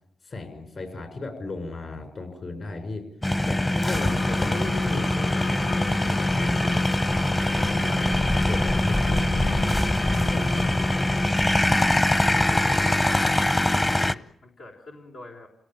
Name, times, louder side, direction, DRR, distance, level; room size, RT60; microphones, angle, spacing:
voice 1, 0.2-3.1 3.4-6.8 7.5-8.2 8.5-9.1 10.3-10.6 10.9-11.5, left 2 dB, 50° left, 7 dB, 6.0 m, -35 dB
sound 1, 3.2-14.1, left 1 dB, 20° left, 0.9 m, -23 dB
sound 2, 3.9-11.3, left 3 dB, 65° left, 3.5 m, -36 dB
voice 2, 6.6-7.2 8.9-9.3 10.4-11.0 12.5-15.5, left 2 dB, 80° left, -1 dB, 3.9 m, -46 dB
28.5 x 17.5 x 9.1 m, 0.72 s
cardioid pair, 70°, 0 cm